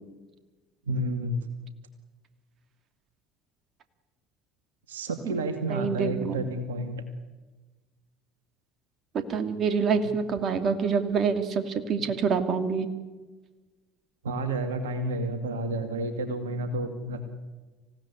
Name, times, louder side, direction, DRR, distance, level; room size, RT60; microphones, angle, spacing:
voice 1, 0.9-1.4 4.9-7.0 14.2-17.3, right 1 dB, 80° right, 8 dB, 2.3 m, -30 dB
voice 2, 5.7-6.4 9.3-12.9, right 5 dB, 45° right, 9 dB, 2.6 m, -26 dB
27.0 x 17.0 x 9.8 m, 1.3 s
figure-of-eight pair, 65°, 0 cm